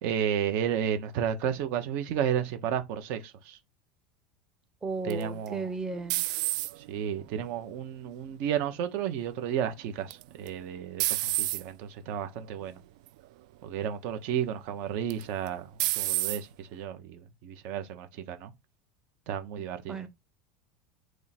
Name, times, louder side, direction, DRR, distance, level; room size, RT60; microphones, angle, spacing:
voice 1, 0.0-3.6 5.0-5.7 6.8-12.8 13.6-15.7 16.0-18.5 19.3-20.0, right 9 dB, 55° right, 0.9 m, -32 dB
voice 2, 4.8-6.2 19.9-20.1, right 3 dB, 15° right, 0.9 m, -34 dB
sound 1, 5.1-7.0 7.6-8.1 10.1-10.5 11.0-11.6 12.4-12.6 13.1-13.2 15.1-15.5 15.8-16.4, right 18 dB, 70° right, 0.3 m, -29 dB
3.6 x 3.1 x 4.2 m
supercardioid pair, 155°, 4 cm